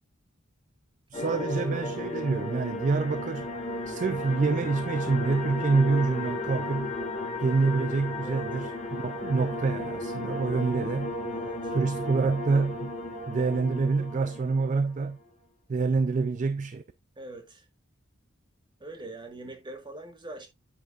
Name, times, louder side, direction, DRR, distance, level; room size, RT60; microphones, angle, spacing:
sound 1, 1.1-15.1, left 2 dB, 30° left, 2.0 m, -34 dB
voice 1, 1.1-3.5 3.9-6.9 7.4-11.1 11.7-12.9 13.3-15.2 15.7-16.8, right 4 dB, 40° right, 0.4 m, -27 dB
voice 2, 11.3-11.8 17.2-17.6 18.8-20.5, right 2 dB, 25° right, 1.5 m, -43 dB
8.8 x 5.8 x 2.5 m
head